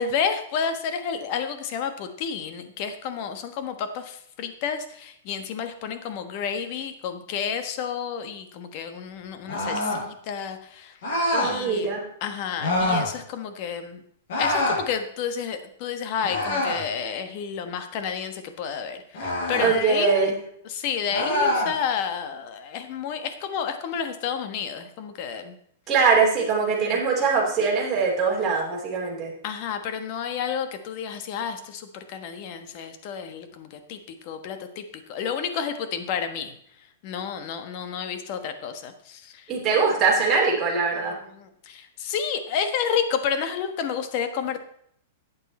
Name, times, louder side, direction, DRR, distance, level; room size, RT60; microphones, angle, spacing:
voice 1, 0.0-10.9 11.4-11.9 12.2-14.0 14.4-20.3 20.6-25.5 26.8-27.0 29.4-36.5 37.0-39.4 41.3-44.6, left 7 dB, 40° left, 8 dB, 1.2 m, -30 dB
sound 1, 9.5-10.1 11.0-11.5 12.6-13.1 14.3-14.8 16.2-16.9 19.1-19.7 21.1-21.7, left 1 dB, 55° left, 4.7 m, -25 dB
voice 2, 11.3-12.1 19.6-20.3 25.9-29.3 39.5-41.2, right 5 dB, 15° right, -6 dB, 3.1 m, -22 dB
11.5 x 8.3 x 4.2 m, 0.68 s
hypercardioid pair, 155°, 0 cm